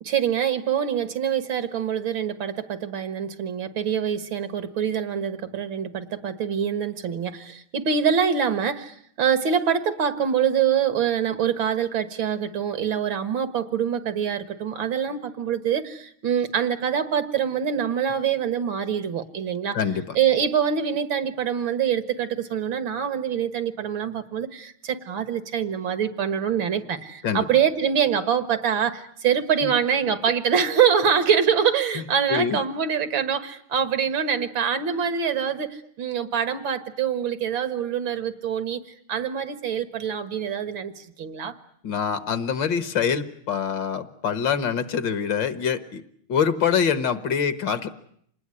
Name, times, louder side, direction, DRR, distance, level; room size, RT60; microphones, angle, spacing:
voice 1, 0.0-19.8 20.2-38.8 39.1-41.5, right 8 dB, 75° right, 12 dB, 2.4 m, -25 dB
voice 2, 19.7-20.2 27.2-27.5 29.6-29.7 30.1-30.2 32.0-32.1 32.3-32.6 41.8-46.0 46.3-47.9, left 7 dB, 65° left, 13 dB, 2.0 m, -25 dB
27.0 x 20.0 x 9.7 m, 0.66 s
omnidirectional pair, 2.2 m